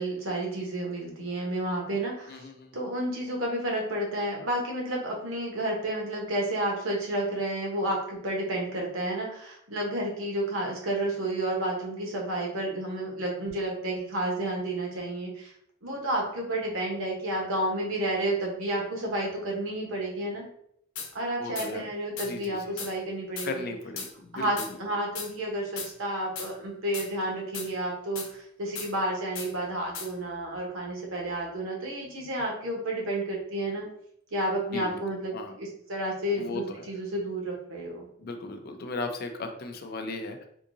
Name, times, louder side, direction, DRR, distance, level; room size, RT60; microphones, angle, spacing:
voice 1, 0.0-2.4 2.7-15.5 15.8-20.4 21.1-23.7 24.3-33.9 34.3-35.3 35.6-38.1, right 1 dB, 75° right, -1 dB, 1.0 m, -31 dB
voice 2, 2.3-2.7 21.4-21.9 22.3-22.8 23.4-24.8 34.7-35.0 35.3-35.6 36.4-36.9 38.2-40.5, left 3 dB, 50° left, 6 dB, 0.4 m, -36 dB
sound 1, 21.0-21.1 21.6-21.7 22.2-22.3 22.8-22.9 23.4-23.5 24.0-24.1 24.6-24.7 25.2-25.3 25.8-25.9 26.4-26.5 26.9-27.1 27.5-27.7 28.2-28.3 28.8-28.9 29.4-29.5 29.9-30.1, left 5 dB, 70° left, 0.8 m, -36 dB
3.6 x 2.7 x 2.6 m, 0.69 s
head